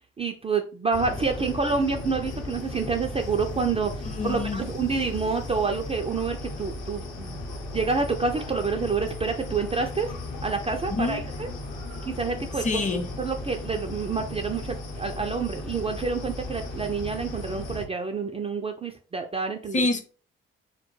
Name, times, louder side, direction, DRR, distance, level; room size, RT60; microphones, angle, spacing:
voice 1, 0.2-3.9 4.2-7.4 7.7-10.1 10.4-11.5 12.0-12.6 13.2-19.8, right 4 dB, 20° right, 3 dB, 0.4 m, -28 dB
sound 1, 0.9-17.9, left 2 dB, 60° left, 0.9 m, -36 dB
voice 2, 4.0-4.6 10.9-11.2 12.6-13.1 19.7-20.0, left 3 dB, 25° left, 7 dB, 0.6 m, -26 dB
2.1 x 2.1 x 3.0 m, 0.37 s
hypercardioid pair, 50°, 29 cm